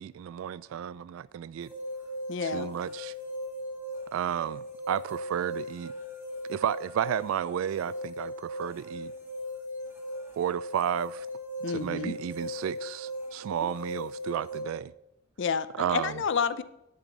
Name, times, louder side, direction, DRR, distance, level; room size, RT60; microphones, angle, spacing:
voice 1, 0.0-1.7 2.4-3.1 4.1-5.9 6.5-9.1 10.4-11.3 11.7-14.9 15.8-16.2, right 9 dB, 80° right, 19 dB, 0.3 m, -32 dB
sound 1, 1.6-14.6, equal, 10° right, 2.7 m, -38 dB
voice 2, 2.3-2.7 11.6-12.1 15.4-16.6, left 6 dB, 65° left, 15 dB, 0.6 m, -29 dB
10.5 x 10.5 x 4.0 m, 0.87 s
head